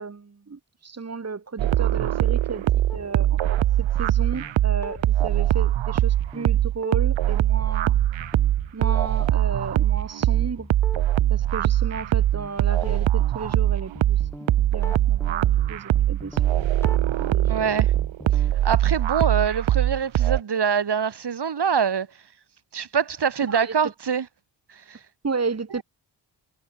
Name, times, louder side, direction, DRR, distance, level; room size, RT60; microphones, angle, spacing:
voice 1, 0.0-2.6 2.9-8.0 8.7-10.7 11.3-14.2 14.7-17.0 17.2-17.7 23.5-23.7 25.2-25.8, right 4 dB, 35° right, 3.0 m, -33 dB
sound 1, 1.6-20.4, right 13 dB, 80° right, 0.8 m, -22 dB
sound 2, 2.9-18.5, left 1 dB, 5° left, 7.1 m, -42 dB
voice 2, 17.5-17.9 18.3-22.1 22.7-24.3 24.7-25.0, right 7 dB, 60° right, 5.0 m, -25 dB
wide cardioid pair, 125°, 45 cm